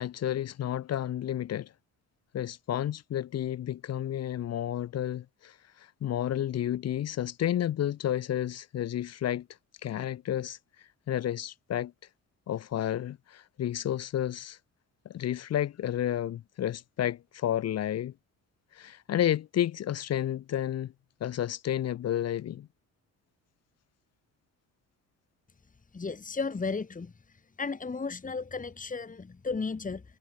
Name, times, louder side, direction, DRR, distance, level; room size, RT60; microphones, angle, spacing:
voice 1, 0.0-1.7 2.3-9.5 9.8-10.6 11.1-11.9 12.5-14.6 15.0-18.1 18.7-20.9 21.2-22.7, left 11 dB, 55° left, 0.8 m, -31 dB
voice 2, 25.9-27.1 27.6-30.0, left 4 dB, 25° left, 2.6 m, -34 dB
cardioid pair, 90°, 30 cm